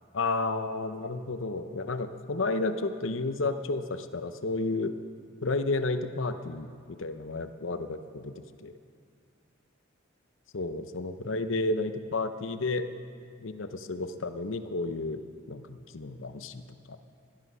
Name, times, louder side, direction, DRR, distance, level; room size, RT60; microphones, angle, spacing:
voice 1, 0.1-4.9 5.4-8.7 10.5-12.9 13.4-15.2 15.5-17.0, left 3 dB, 75° left, 10 dB, 0.8 m, -32 dB
17.0 x 12.0 x 5.6 m, 2.2 s
head